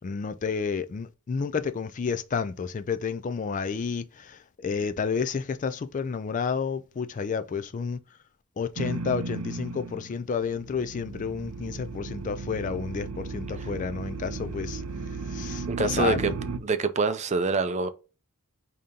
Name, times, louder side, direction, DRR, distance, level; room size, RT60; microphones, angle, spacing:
voice 1, 0.0-8.0 8.6-16.3, left 5 dB, 35° left, 0.3 m, -31 dB
sound 1, 8.8-10.2 10.4-16.6, right 4 dB, 80° right, 0.6 m, -35 dB
voice 2, 15.7-16.3 16.6-17.9, right 4 dB, 30° right, 0.4 m, -25 dB
5.2 x 2.8 x 3.6 m
head